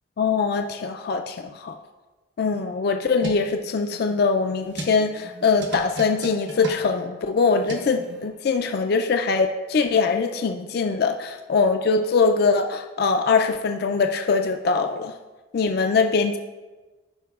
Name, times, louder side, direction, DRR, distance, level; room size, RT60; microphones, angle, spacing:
voice 1, 0.2-1.8 2.4-15.1 15.5-16.4, left 4 dB, 50° left, 5 dB, 0.3 m, -22 dB
sound 1, 2.7-8.3, right 1 dB, 60° right, 0.9 m, -37 dB
13.0 x 5.1 x 2.4 m, 1.2 s
head